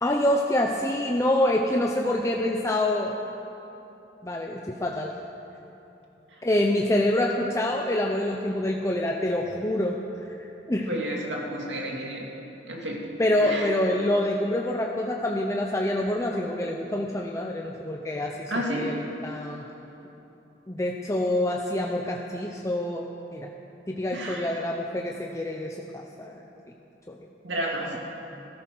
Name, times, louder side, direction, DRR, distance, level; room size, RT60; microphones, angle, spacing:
voice 1, 0.0-3.1 4.2-5.1 6.4-10.0 10.4-10.9 13.2-19.6 20.7-23.1 23.3-23.5 23.9-26.4 27.1-27.2, left 1 dB, 15° left, 0 dB, 0.7 m, -26 dB
voice 2, 10.9-12.3 12.7-13.0 13.4-13.7 18.5-18.9 24.1-24.5 27.4-27.9, right 1 dB, 85° right, -2 dB, 2.8 m, -31 dB
16.5 x 14.0 x 6.2 m, 3.0 s
head